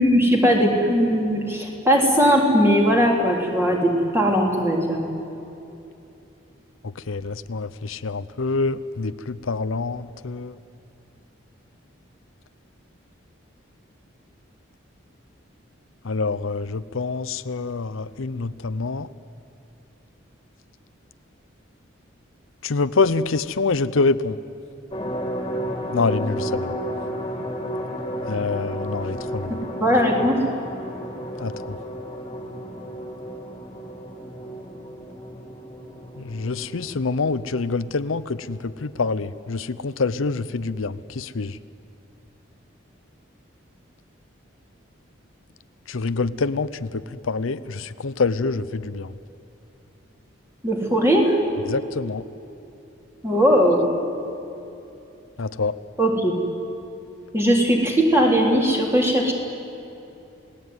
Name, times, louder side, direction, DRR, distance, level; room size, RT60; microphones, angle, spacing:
voice 1, 0.0-5.0 29.5-30.4 50.6-51.3 53.2-53.9 56.0-56.4 57.3-59.3, equal, 10° right, 0 dB, 3.5 m, -19 dB
voice 2, 6.8-10.6 16.0-19.1 22.6-24.4 25.9-26.8 28.2-29.6 31.4-31.8 36.2-41.6 45.9-49.1 51.7-52.2 55.4-55.8, left 4 dB, 80° left, 14 dB, 0.7 m, -26 dB
sound 1, 24.9-39.0 39.3-39.4 39.8-39.9, equal, 20° left, 2.9 m, -33 dB
28.0 x 19.0 x 9.6 m, 2.8 s
head